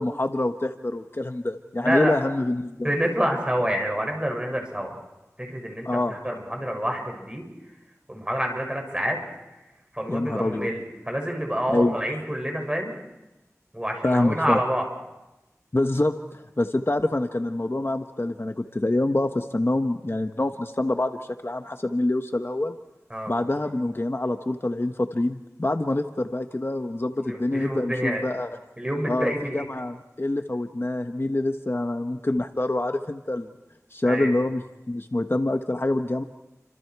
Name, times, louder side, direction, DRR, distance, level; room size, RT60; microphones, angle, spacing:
voice 1, 0.0-2.9 5.8-6.2 10.1-10.7 11.7-12.2 14.0-14.6 15.7-21.2 21.4-22.8 23.3-28.5 29.1-33.5 33.9-34.6 34.9-36.2, left 2 dB, 45° left, 6 dB, 1.2 m, -26 dB
voice 2, 1.8-2.2 2.8-4.9 5.4-7.5 8.1-9.2 9.9-13.0 13.7-14.9 23.1-23.3 27.3-28.2 28.8-29.6 34.1-34.3, equal, 15° right, 2 dB, 6.9 m, -27 dB
30.0 x 26.5 x 4.8 m, 0.99 s
wide cardioid pair, 50°, 6 cm